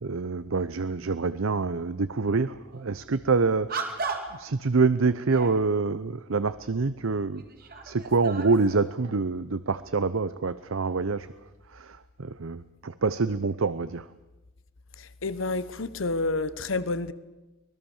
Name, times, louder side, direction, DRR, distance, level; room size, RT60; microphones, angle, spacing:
voice 1, 0.0-4.0 4.4-7.4 7.8-11.3 11.7-14.0, right 4 dB, 75° right, 14 dB, 0.7 m, -26 dB
sound 1, 2.7-2.9 3.7-4.5 5.0-5.6 6.6-6.7 7.3-8.9, right 4 dB, 45° right, 2.5 m, -36 dB
voice 2, 15.0-17.1, left 3 dB, 70° left, 14 dB, 1.1 m, -29 dB
24.5 x 20.0 x 7.2 m, 1.1 s
head